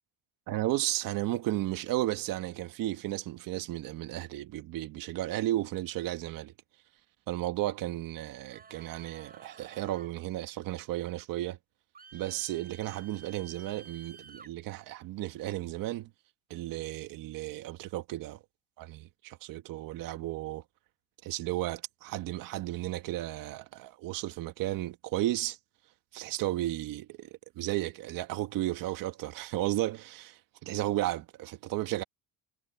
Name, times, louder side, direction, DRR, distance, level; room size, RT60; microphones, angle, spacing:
voice 1, 0.5-6.5 7.3-11.6 12.1-16.1 16.5-18.4 18.8-20.6 21.2-25.6 26.1-32.0, right 15 dB, 80° right, 1.6 m, -34 dB
sound 1, 8.5-10.1 11.9-14.5, right 5 dB, 25° right, 7.1 m, -53 dB
cardioid pair, 140°, 33 cm